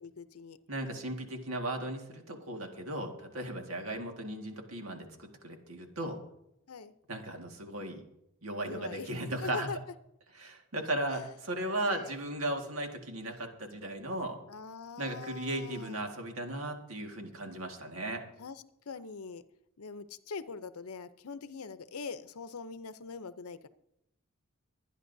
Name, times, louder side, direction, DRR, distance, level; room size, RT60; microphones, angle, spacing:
voice 1, 0.0-0.6 6.7-6.9 8.6-9.8 11.1-11.2 11.8-12.1 14.5-16.1 18.4-19.4 19.8-23.7, left 4 dB, 80° left, 12 dB, 0.7 m, -43 dB
voice 2, 0.7-6.2 7.1-8.0 8.4-9.7 10.3-14.4 15.0-18.2, right 1 dB, 70° right, 3 dB, 1.8 m, -36 dB
23.5 x 9.9 x 2.7 m, 0.82 s
head